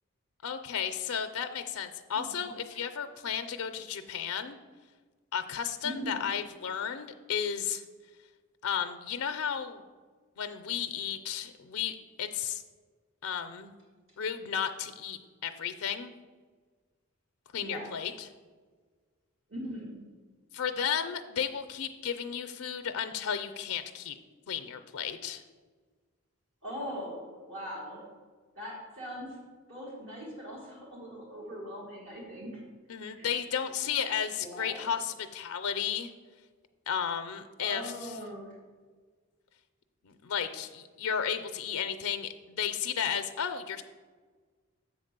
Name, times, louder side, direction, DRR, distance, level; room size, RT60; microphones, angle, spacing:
voice 1, 0.4-4.6 5.3-7.8 8.6-9.8 10.4-12.6 13.2-13.7 14.2-16.1 17.5-18.3 20.5-24.2 24.5-25.4 32.9-36.1 36.9-38.1 40.0-43.8, left 8 dB, 90° left, 8 dB, 0.4 m, -33 dB
voice 2, 5.8-6.2 17.6-17.9 19.5-20.1 26.6-28.0 28.6-29.4 29.7-32.6 33.2-33.3 34.4-34.9 37.6-38.5, equal, 60° right, -4 dB, 1.6 m, -40 dB
7.2 x 4.0 x 6.6 m, 1.5 s
head